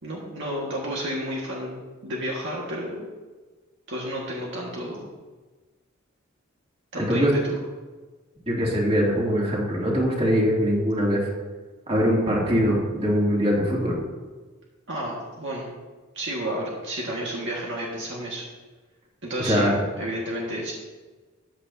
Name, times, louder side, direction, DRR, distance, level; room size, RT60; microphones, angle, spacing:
voice 1, 0.0-3.0 3.9-5.1 6.9-7.6 14.9-15.7 16.1-18.4 19.2-19.7 20.0-20.7, equal, 65° right, -3 dB, 1.7 m, -31 dB
voice 2, 7.0-7.3 8.5-11.2 11.9-13.9 19.4-19.7, equal, 30° right, -4 dB, 2.7 m, -22 dB
14.0 x 9.0 x 2.8 m, 1.3 s
head